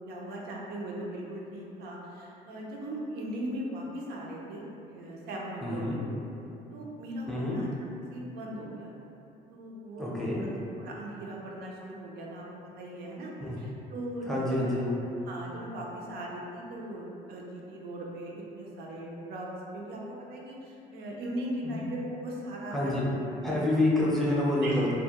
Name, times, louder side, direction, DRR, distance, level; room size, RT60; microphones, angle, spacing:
voice 1, 0.1-6.2 6.7-7.7 8.1-8.9 9.5-10.5 10.8-12.4 12.8-13.3 13.6-14.8 15.2-19.5 19.7-23.7 24.6-24.8, right 1 dB, 75° right, -3 dB, 0.5 m, -39 dB
voice 2, 5.6-6.0 7.3-7.6 10.0-10.4 13.4-13.5 14.3-14.9 21.6-21.7 22.7-23.0 23.4-24.9, left 1 dB, ahead, -7 dB, 0.5 m, -27 dB
2.2 x 2.0 x 2.8 m, 2.8 s
cardioid pair, 110°, 17 cm